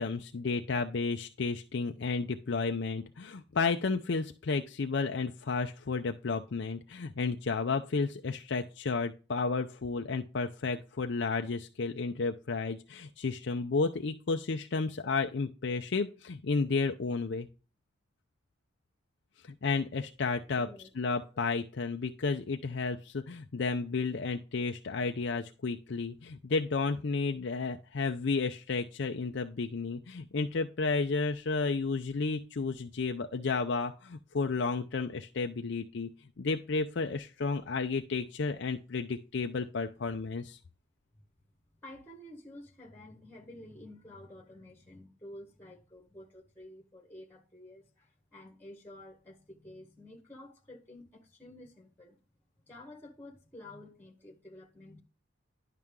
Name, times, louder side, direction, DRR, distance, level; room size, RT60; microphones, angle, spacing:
voice 1, 0.0-17.5 19.4-20.7 21.0-36.1 36.4-40.6, left 4 dB, 55° left, 0.5 m, -32 dB
voice 2, 20.4-20.9 41.8-52.2 52.7-55.0, left 1 dB, 10° left, 1.4 m, -51 dB
11.0 x 5.7 x 3.7 m
head